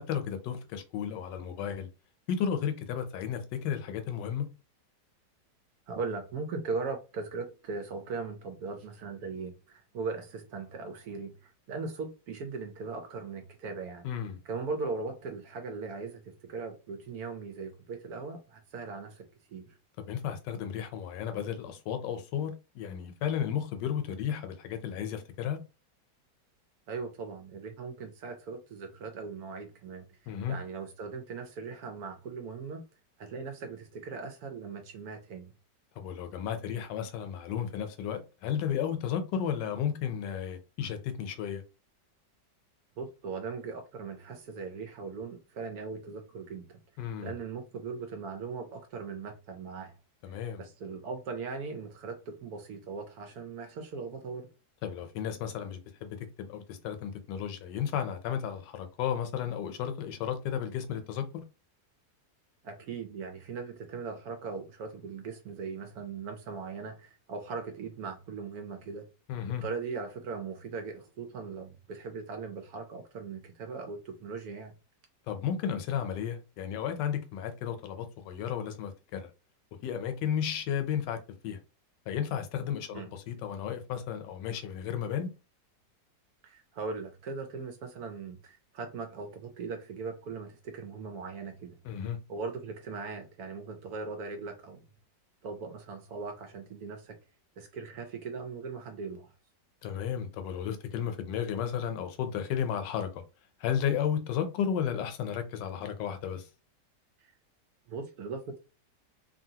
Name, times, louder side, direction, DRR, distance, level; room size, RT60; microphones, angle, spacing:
voice 1, 0.0-1.9 2.3-4.5 14.0-14.4 20.1-25.6 30.3-30.6 36.0-41.6 47.0-47.4 50.2-50.7 54.8-61.4 69.3-69.6 75.3-79.3 79.8-81.6 82.1-85.3 91.8-92.2 99.8-103.2 103.6-106.5, left 8 dB, 80° left, 1.2 m, -33 dB
voice 2, 5.9-14.1 14.5-19.3 19.5-19.7 26.9-32.8 33.2-35.5 43.0-46.8 47.2-50.0 50.6-54.5 62.6-69.0 69.6-74.7 82.9-83.1 86.4-91.8 92.3-94.8 95.4-97.2 97.6-99.3 107.2-107.3 107.9-108.6, right 4 dB, 70° right, 1.0 m, -39 dB
2.8 x 2.6 x 2.7 m
omnidirectional pair, 1.9 m